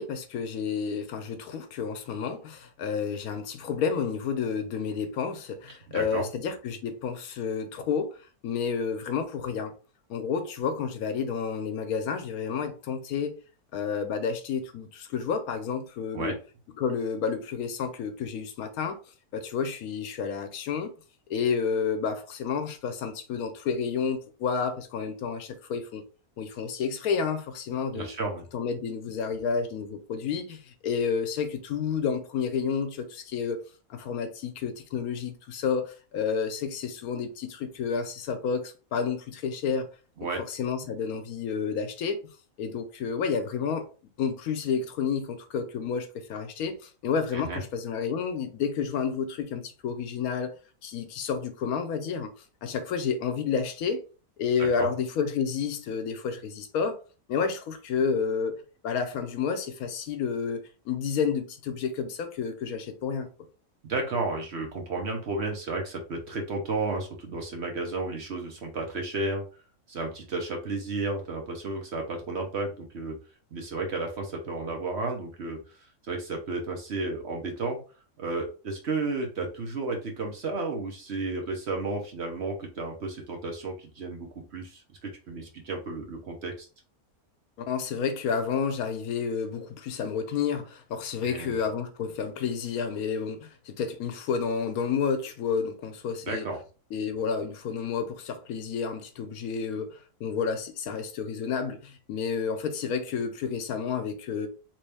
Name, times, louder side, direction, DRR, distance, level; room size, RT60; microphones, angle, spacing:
voice 1, 0.0-8.1 8.4-9.7 10.1-13.4 13.7-16.4 16.8-19.0 19.3-20.9 21.3-26.0 26.4-28.1 28.5-33.6 33.9-39.9 40.5-42.2 42.6-43.9 44.2-46.8 47.0-50.5 50.8-52.3 52.6-54.0 54.4-57.0 57.3-58.6 58.8-63.3 87.7-96.5 96.9-104.5, left 6 dB, 80° left, 1.1 m, -30 dB
voice 2, 5.9-6.3 16.1-16.3 27.9-28.4 40.2-40.4 47.3-47.6 54.6-54.9 63.8-69.4 69.9-73.1 73.5-75.6 76.0-77.8 78.2-86.7 91.2-91.6 96.2-96.6, right 3 dB, 55° right, 1.0 m, -32 dB
3.0 x 3.0 x 3.3 m
omnidirectional pair, 1.5 m